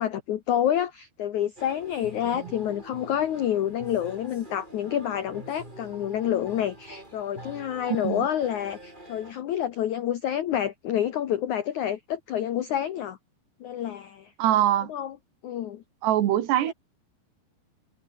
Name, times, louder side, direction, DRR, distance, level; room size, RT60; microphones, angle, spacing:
voice 1, 0.0-13.2 13.6-14.3 14.9-15.2 15.4-15.8 16.6-16.7, left 10 dB, 80° left, 1.7 m, -28 dB
sound 1, 1.6-9.3, right 1 dB, 10° right, 5.3 m, -45 dB
voice 2, 14.4-14.9 16.0-16.7, right 12 dB, 70° right, 3.6 m, -23 dB
omnidirectional pair, 5.2 m